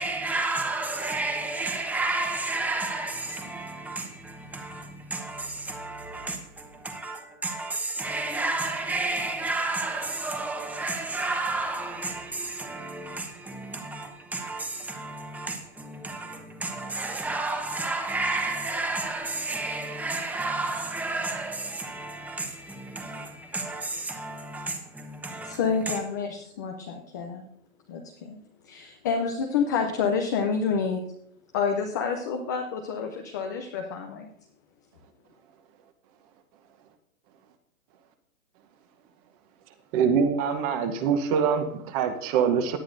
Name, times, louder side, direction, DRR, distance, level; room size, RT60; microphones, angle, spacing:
voice 1, 0.0-26.0, right 2 dB, 5° right, 1.0 m, -31 dB
voice 2, 25.4-27.4 27.9-28.4 28.7-31.0 31.5-34.3, left 6 dB, 15° left, 0.4 m, -28 dB
voice 3, 39.9-42.8, right 7 dB, 25° right, 1.0 m, -24 dB
18.0 x 10.0 x 2.6 m
hypercardioid pair, 145°, 42 cm